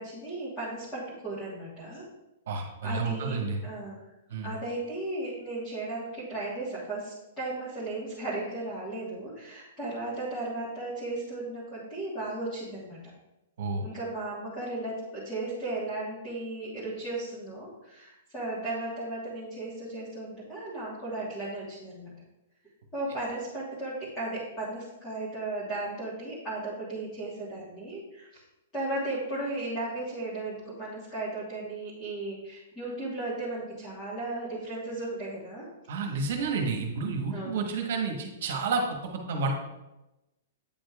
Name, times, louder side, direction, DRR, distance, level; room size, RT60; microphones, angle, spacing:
voice 1, 0.0-2.1 2.8-4.0 4.4-13.0 13.8-22.1 22.9-28.4 28.7-35.7 37.3-37.7, right 2 dB, 15° left, -10 dB, 1.4 m, -35 dB
voice 2, 2.5-3.6 4.3-4.5 13.6-13.8 35.9-38.8 39.3-39.5, right 4 dB, 55° right, 2 dB, 1.1 m, -30 dB
8.7 x 5.1 x 2.4 m, 0.98 s
hypercardioid pair, 170°, 0 cm